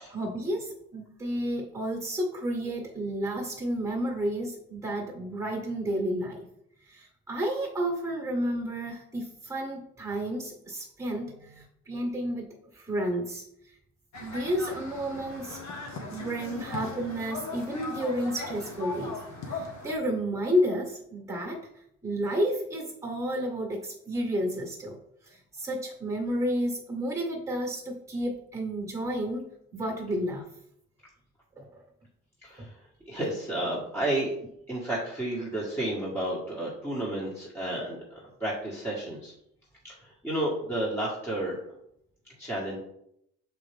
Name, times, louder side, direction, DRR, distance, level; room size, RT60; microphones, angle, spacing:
voice 1, 0.0-6.4 6.9-13.7 14.2-15.6 16.1-19.2 19.5-21.6 22.0-25.0 25.2-29.5 29.7-30.4 31.6-31.7 32.6-32.7, equal, 10° right, 0 dB, 1.7 m, -31 dB
sound 1, 14.1-20.0, left 3 dB, 65° left, 1.6 m, -38 dB
voice 2, 32.4-32.7 33.1-34.3 34.7-38.0 38.4-39.3 39.8-40.0 40.2-41.6 42.4-42.8, right 1 dB, 5° left, -6 dB, 1.7 m, -31 dB
5.9 x 4.6 x 3.5 m, 0.75 s
cardioid pair, 90°, 30 cm